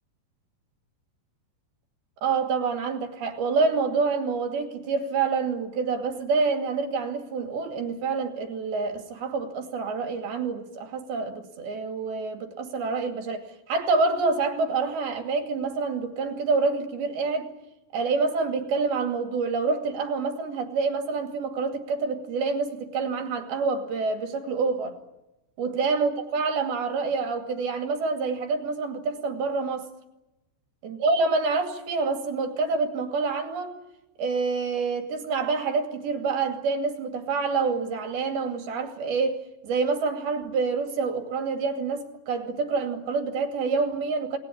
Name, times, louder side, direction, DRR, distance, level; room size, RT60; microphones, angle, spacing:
voice 1, 2.2-17.5 17.9-24.9 25.6-29.9 30.8-33.7 34.2-44.4, right 4 dB, 55° right, 5 dB, 3.9 m, -27 dB
29.5 x 20.5 x 8.7 m, 1.0 s
omnidirectional pair, 5.9 m